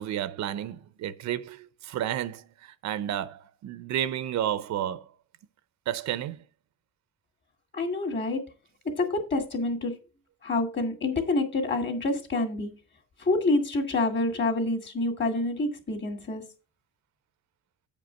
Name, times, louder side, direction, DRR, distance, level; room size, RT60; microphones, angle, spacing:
voice 1, 0.0-5.1 5.9-6.4, right 11 dB, 60° right, 0.6 m, -31 dB
voice 2, 7.7-8.4 9.0-9.9 10.4-12.7 13.3-16.4, left 2 dB, 35° left, 2.2 m, -27 dB
8.9 x 5.2 x 5.8 m
cardioid pair, 140°, 31 cm